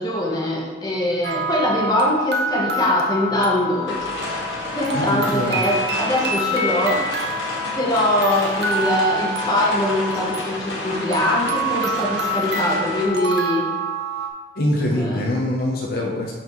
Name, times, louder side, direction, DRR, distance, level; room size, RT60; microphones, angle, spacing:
voice 1, 0.0-4.1 4.7-7.0 7.7-13.7 14.9-15.2, left 1 dB, 20° left, -3 dB, 1.2 m, -22 dB
sound 1, 1.2-14.3, equal, 60° right, 0.8 m, -27 dB
sound 2, 3.9-13.0, left 1 dB, 80° left, 1.9 m, -30 dB
voice 2, 4.9-5.6 14.6-16.3, left 1 dB, 55° left, -1 dB, 0.8 m, -23 dB
10.5 x 4.2 x 3.1 m, 1.3 s
head